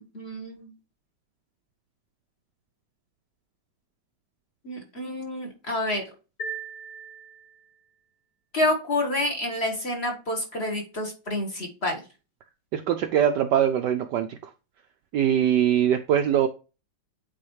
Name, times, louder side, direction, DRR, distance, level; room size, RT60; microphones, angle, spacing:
voice 1, 0.1-0.7 4.6-6.0 8.5-12.0, left 1 dB, 35° left, 1.4 m, -28 dB
sound 1, 6.4-7.9, right 3 dB, 60° left, 4.8 m, -38 dB
voice 2, 12.7-14.4 15.1-16.5, right 9 dB, 75° right, 1.0 m, -22 dB
8.6 x 4.2 x 3.1 m
omnidirectional pair, 2.2 m